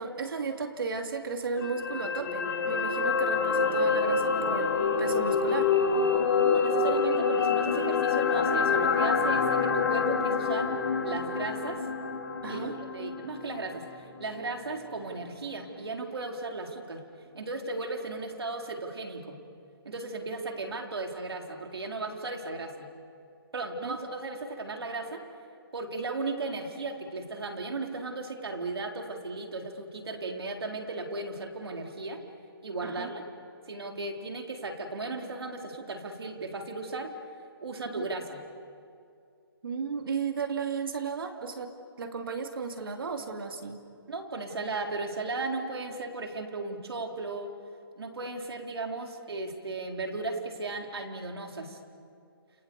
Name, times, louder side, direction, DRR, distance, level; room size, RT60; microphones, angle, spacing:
voice 1, 0.0-5.7 12.4-12.8 23.8-24.0 32.8-33.1 38.0-38.1 39.6-43.8, right 5 dB, 65° right, 4 dB, 2.8 m, -34 dB
sound 1, 1.6-13.9 14.2-14.4, left 5 dB, 65° left, 4.6 m, -27 dB
voice 2, 6.4-10.7 11.0-11.8 12.5-12.7 12.9-13.8 14.2-17.0 17.3-19.4 19.9-22.9 23.5-25.2 25.7-32.2 32.6-33.2 33.7-37.1 37.6-38.4 44.1-47.5 48.0-51.8, right 3 dB, 90° right, 2 dB, 4.0 m, -36 dB
29.0 x 27.5 x 7.1 m, 2.4 s
hypercardioid pair, 170°, 13 cm